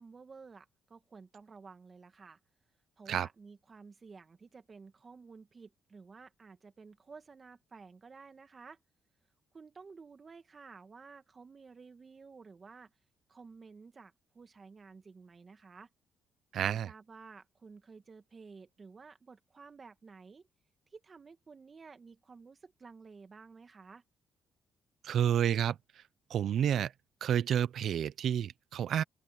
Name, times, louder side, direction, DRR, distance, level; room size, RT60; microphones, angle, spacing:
voice 1, 0.0-2.4 3.0-8.8 9.5-12.9 13.3-15.9 16.6-20.5 20.9-24.0, right 4 dB, 35° right, 2.2 m, -53 dB
voice 2, 16.5-16.9 25.0-25.7 26.3-26.9 27.2-29.0, right 9 dB, 70° right, 0.7 m, -29 dB
open air
cardioid pair, 90°, 0 cm